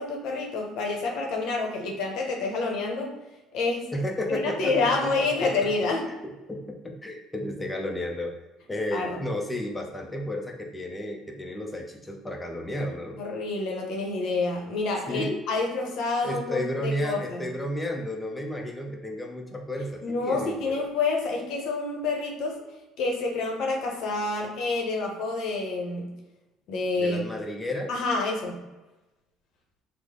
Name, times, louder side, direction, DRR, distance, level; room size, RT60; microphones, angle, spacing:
voice 1, 0.0-3.1 3.5-3.9 4.3-6.1 8.9-9.2 13.2-17.4 20.0-22.6 23.0-26.1 26.7-27.2 27.9-28.6, left 3 dB, 70° left, 1 dB, 0.7 m, -28 dB
voice 2, 3.9-5.7 6.2-8.3 8.7-13.2 15.1-15.4 16.2-20.7 27.0-27.9, left 1 dB, 15° left, 1 dB, 0.5 m, -32 dB
3.2 x 2.0 x 3.6 m, 1.1 s
hypercardioid pair, 70°, 0 cm